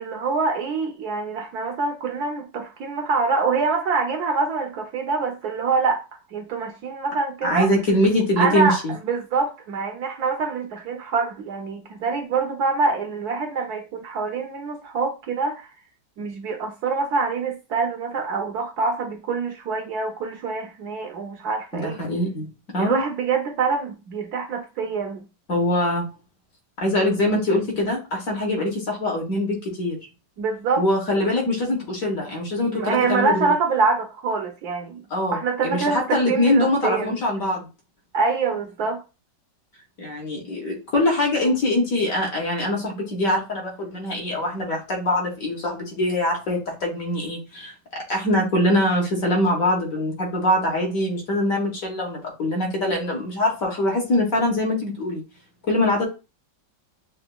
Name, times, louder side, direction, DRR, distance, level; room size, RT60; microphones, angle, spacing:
voice 1, 0.0-6.0 6.3-7.7 8.4-15.7 16.2-22.0 22.8-25.3 30.4-30.8 32.7-35.0 35.3-37.2 38.1-39.0, right 4 dB, 70° right, 1.1 m, -25 dB
voice 2, 7.4-8.9 21.7-23.0 25.5-26.1 26.8-30.0 30.8-33.5 35.1-37.7 40.0-55.2 55.7-56.1, left 1 dB, 55° left, 1.4 m, -23 dB
6.8 x 2.4 x 2.2 m
omnidirectional pair, 2.0 m